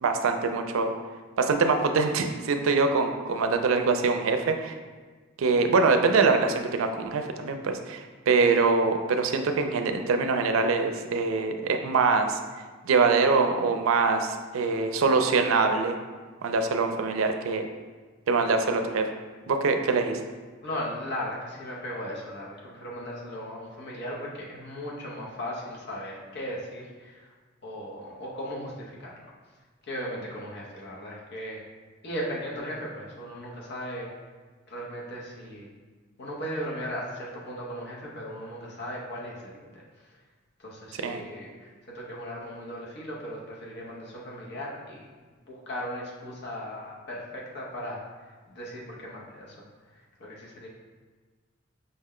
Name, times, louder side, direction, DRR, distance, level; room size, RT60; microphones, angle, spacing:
voice 1, 0.0-0.9 1.4-4.7 5.4-12.4 12.8-15.9 16.4-17.6 18.3-19.1 19.5-20.2 41.0-41.2, right 4 dB, 85° right, 6 dB, 0.4 m, -24 dB
voice 2, 20.6-27.3 27.6-29.1 29.8-31.6 32.0-34.1 34.7-35.7 36.2-39.8 40.6-45.0 45.5-49.6 49.9-50.7, equal, 55° left, -4 dB, 0.7 m, -37 dB
5.3 x 2.1 x 3.6 m, 1.4 s
head